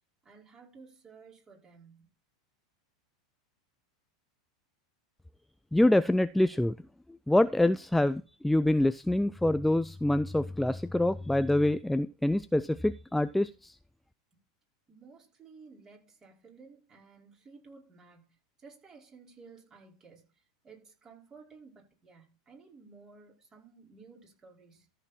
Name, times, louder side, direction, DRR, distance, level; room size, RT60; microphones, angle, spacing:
voice 1, 0.2-2.1 14.9-20.3 20.6-24.9, right 4 dB, 25° right, -2 dB, 5.2 m, -55 dB
voice 2, 5.7-6.7 7.3-13.7, left 1 dB, 5° left, 14 dB, 0.4 m, -26 dB
14.0 x 4.9 x 4.4 m, 0.33 s
hypercardioid pair, 95°, 3 cm